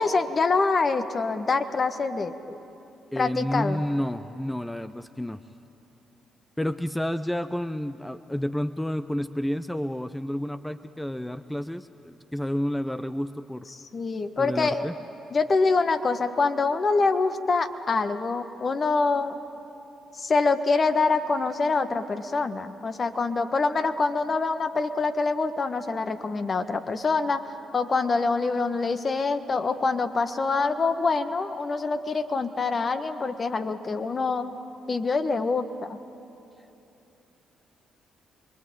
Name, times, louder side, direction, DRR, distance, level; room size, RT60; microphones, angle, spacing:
voice 1, 0.0-2.6 3.2-3.8 13.9-14.9 15.3-19.4 20.1-27.4 27.7-34.5 34.9-36.0, left 4 dB, 40° left, 8 dB, 1.5 m, -25 dB
voice 2, 3.1-5.4 6.6-13.7 14.4-15.0, left 1 dB, 5° left, 11 dB, 0.8 m, -30 dB
26.0 x 22.5 x 8.8 m, 3.0 s
hypercardioid pair, 45°, 0 cm